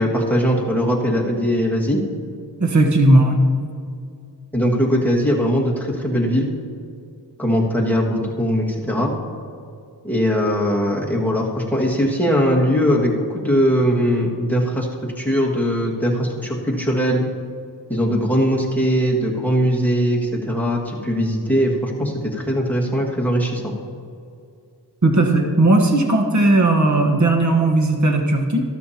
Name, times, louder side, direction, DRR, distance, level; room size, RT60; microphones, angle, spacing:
voice 1, 0.0-2.0 4.5-6.6 7.4-9.1 10.0-17.3 17.9-23.7, equal, 5° left, -3 dB, 1.9 m, -20 dB
voice 2, 2.6-3.4 25.0-28.6, right 2 dB, 40° right, 2 dB, 1.2 m, -16 dB
14.0 x 12.5 x 2.9 m, 2.4 s
wide cardioid pair, 70°, 44 cm